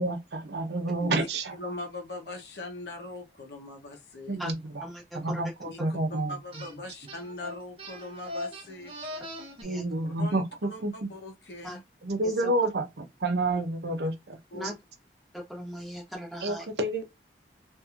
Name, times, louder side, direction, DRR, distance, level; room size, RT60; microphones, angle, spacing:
voice 1, 0.0-1.5 4.3-4.8 5.1-6.4 9.6-10.4 10.8-11.1 12.0-14.4 16.4-17.0, right 2 dB, 75° right, 0.7 m, -29 dB
voice 2, 1.6-4.4 5.7-9.3 10.0-11.8 14.5-14.7, left 2 dB, 75° left, 0.8 m, -41 dB
voice 3, 4.8-5.4 5.8-5.9 9.6-9.8 11.6-11.8 12.2-12.5 14.5-14.7 15.3-16.6, equal, ahead, 1.1 m, -39 dB
sound 1, 6.5-6.7 7.1-9.6, left 1 dB, 30° right, 0.7 m, -40 dB
2.9 x 2.6 x 2.4 m
head